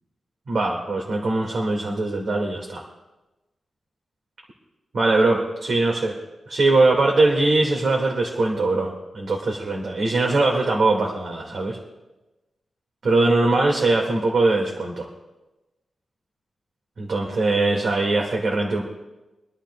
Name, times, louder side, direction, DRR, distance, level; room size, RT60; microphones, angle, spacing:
voice 1, 0.5-2.8 4.9-6.2 6.5-11.8 13.0-15.1 17.0-18.8, right 2 dB, 60° right, 0 dB, 1.8 m, -21 dB
25.5 x 11.5 x 2.2 m, 1.1 s
wide cardioid pair, 150°, 0 cm